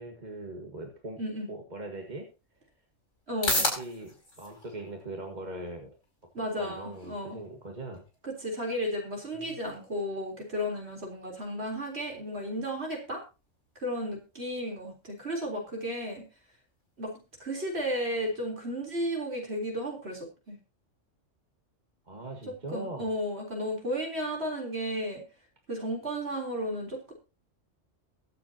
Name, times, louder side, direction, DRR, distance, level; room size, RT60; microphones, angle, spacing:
voice 1, 0.0-1.2 1.5-2.3 3.4-5.9 6.6-8.0 9.3-9.6 22.1-23.1, right 2 dB, 35° right, 2 dB, 1.9 m, -41 dB
sound 1, 2.0-18.9, left 1 dB, 75° left, 5.5 m, -41 dB
voice 2, 3.3-3.7 6.3-7.4 8.2-13.2 13.8-16.2 17.0-17.1 17.4-20.6 22.7-25.2 25.7-27.1, equal, 55° right, 0 dB, 4.1 m, -33 dB
22.5 x 7.8 x 2.9 m, 0.29 s
omnidirectional pair, 1.3 m